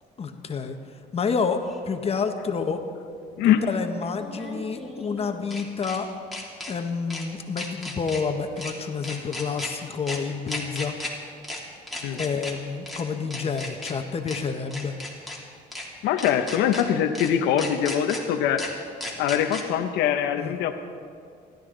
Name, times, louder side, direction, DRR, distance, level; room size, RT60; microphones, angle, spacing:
voice 1, 0.2-0.8 1.1-2.8 3.4-6.1 6.7-10.9 12.1-15.0 20.4-20.5, left 5 dB, 35° left, 6 dB, 1.2 m, -29 dB
sound 1, 1.7-1.8 4.1-6.0 6.3-6.7 7.1-7.2 7.6-8.2 8.6-8.7 9.0-9.7 10.1-10.2 10.5-11.1 11.4-11.6 11.9-12.5 12.9-13.0 13.3-13.9 14.3-14.4 14.7-15.4 15.7-15.9 16.2-16.8 17.1-17.3 17.6-18.2 18.6-18.7 19.0-19.6, left 1 dB, ahead, 3.0 m, -35 dB
voice 2, 16.0-18.6 19.2-20.7, left 9 dB, 90° left, 6 dB, 0.9 m, -23 dB
28.0 x 12.0 x 3.9 m, 2.3 s
cardioid pair, 110°, 17 cm